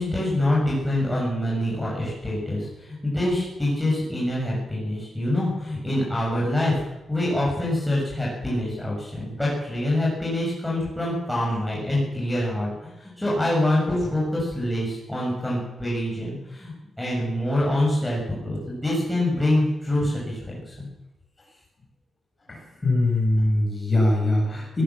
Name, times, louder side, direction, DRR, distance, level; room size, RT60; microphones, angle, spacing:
voice 1, 0.0-6.8 7.1-20.9, left 1 dB, 5° left, -5 dB, 7.1 m, -25 dB
voice 2, 22.5-24.8, left 1 dB, 20° left, -1 dB, 7.9 m, -22 dB
18.5 x 18.5 x 7.6 m, 0.95 s
wide cardioid pair, 170°, 0 cm